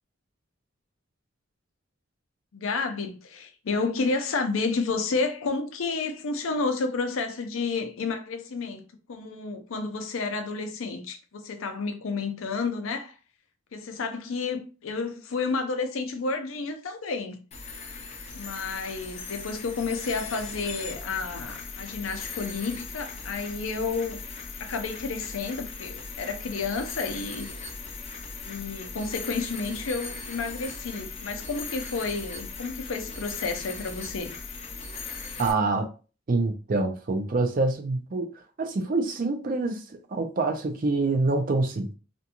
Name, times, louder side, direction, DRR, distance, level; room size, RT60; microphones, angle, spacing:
voice 1, 2.5-13.2 13.7-17.4 18.3-24.2 24.6-27.5 28.4-34.4, left 4 dB, 80° left, 0.5 m, -31 dB
sound 1, 17.5-35.5, left 4 dB, 30° left, 0.5 m, -39 dB
voice 2, 35.4-35.9 36.3-41.9, right 3 dB, 45° right, 0.4 m, -26 dB
2.5 x 2.3 x 2.8 m
head